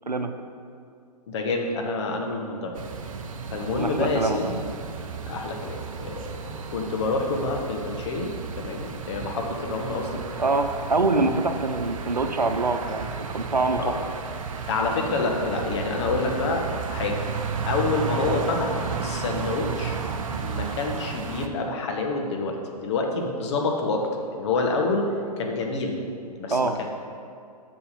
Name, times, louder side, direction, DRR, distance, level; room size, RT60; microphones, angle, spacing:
voice 1, 0.1-0.4 3.7-4.4 10.4-13.1 13.3-13.9 26.5-26.7, right 3 dB, 85° right, 7 dB, 0.7 m, -24 dB
voice 2, 1.3-2.7 3.5-4.6 5.3-6.3 6.5-10.2 13.8-13.9 14.7-17.2 17.7-20.0 20.4-25.1 25.4-26.0 26.4-26.8, left 3 dB, 45° left, 1 dB, 1.4 m, -27 dB
sound 1, 2.7-21.5, right 6 dB, 55° right, 0.8 m, -33 dB
7.0 x 6.1 x 7.0 m, 2.4 s
figure-of-eight pair, 120°, 21 cm